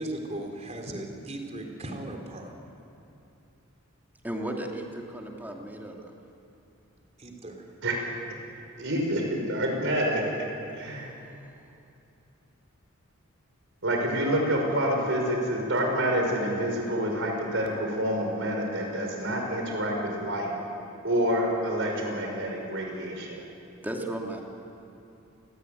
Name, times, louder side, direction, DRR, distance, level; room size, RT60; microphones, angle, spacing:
voice 1, 0.0-2.5 7.2-7.6, right 1 dB, 30° right, 3 dB, 3.7 m, -37 dB
voice 2, 4.2-6.0 23.8-24.4, right 1 dB, 10° right, 0 dB, 2.7 m, -34 dB
voice 3, 8.8-10.2 10.7-11.1 13.8-20.5 21.0-23.5, right 1 dB, 60° right, 1 dB, 5.8 m, -27 dB
29.0 x 19.5 x 9.5 m, 2.8 s
head